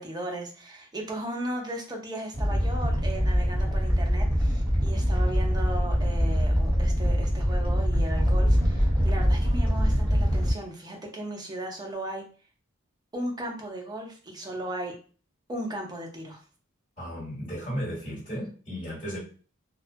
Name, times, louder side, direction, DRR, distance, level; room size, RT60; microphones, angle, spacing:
voice 1, 0.0-12.3 13.1-15.0 15.5-16.4, right 1 dB, 20° right, 0.5 m, -36 dB
Animal, 2.3-10.5, equal, 5° left, 1.4 m, -24 dB
voice 2, 17.0-19.2, equal, 25° left, 1.5 m, -34 dB
2.3 x 2.2 x 2.4 m
head